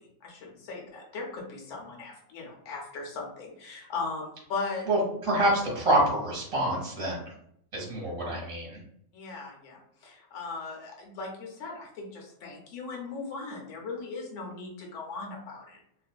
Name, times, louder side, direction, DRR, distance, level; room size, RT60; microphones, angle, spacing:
voice 1, 0.0-4.9 9.1-15.8, left 4 dB, 60° left, 0 dB, 1.0 m, -38 dB
voice 2, 4.9-7.2 7.7-8.8, right 1 dB, 25° right, -4 dB, 0.9 m, -26 dB
2.5 x 2.5 x 2.2 m, 0.70 s
omnidirectional pair, 1.5 m